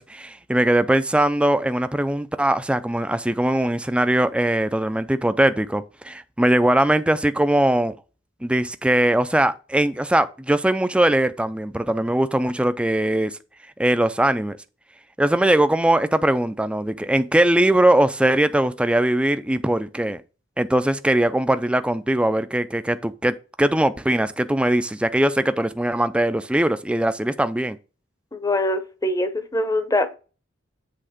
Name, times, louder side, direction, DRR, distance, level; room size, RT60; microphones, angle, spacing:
voice 1, 0.0-7.9 8.4-13.4 13.8-14.6 15.2-20.2 20.6-27.8, right 1 dB, 5° right, 0.4 m, -21 dB
voice 2, 28.3-30.1, left 1 dB, 20° left, 0.7 m, -23 dB
7.8 x 3.5 x 5.0 m
head